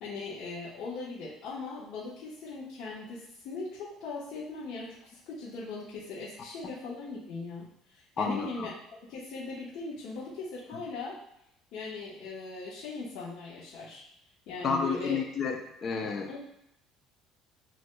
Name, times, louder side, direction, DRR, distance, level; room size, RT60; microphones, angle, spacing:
voice 1, 0.0-7.7 7.9-8.7 9.1-11.1 11.7-14.0 14.5-15.2 16.3-16.4, left 3 dB, 75° left, -9 dB, 1.1 m, -39 dB
voice 2, 8.2-8.7 14.6-16.4, left 5 dB, 40° left, 2 dB, 0.6 m, -31 dB
7.6 x 2.6 x 2.2 m, 0.79 s
cardioid pair, 105°, 0 cm